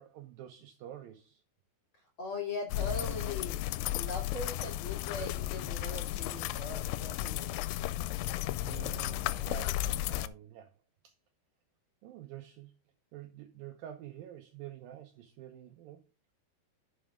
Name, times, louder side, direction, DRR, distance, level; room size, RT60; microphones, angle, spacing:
voice 1, 0.0-1.4 8.6-10.7 11.0-11.1 12.0-12.7 13.1-16.0, right 12 dB, 75° right, 2.2 m, -48 dB
voice 2, 2.2-3.6 3.9-7.6, left 2 dB, 35° left, 2.8 m, -40 dB
sound 1, 2.7-10.3, left 15 dB, 85° left, 2.8 m, -34 dB
11.0 x 6.3 x 3.6 m
omnidirectional pair, 4.9 m